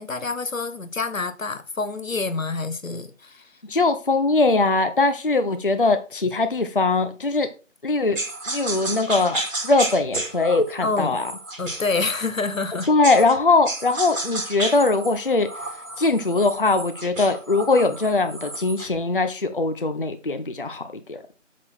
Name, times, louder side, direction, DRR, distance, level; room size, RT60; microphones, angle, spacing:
voice 1, 0.0-3.5 10.8-11.2 11.6-12.9 20.6-20.7, left 3 dB, 90° left, 1.3 m, -27 dB
voice 2, 3.7-7.5 7.8-11.3 12.9-15.5 16.0-21.2, left 3 dB, 45° left, 0.7 m, -21 dB
sound 1, 8.2-13.4 13.7-19.0, right 2 dB, 90° right, 2.4 m, -32 dB
6.3 x 6.0 x 4.5 m
figure-of-eight pair, 170°, 39 cm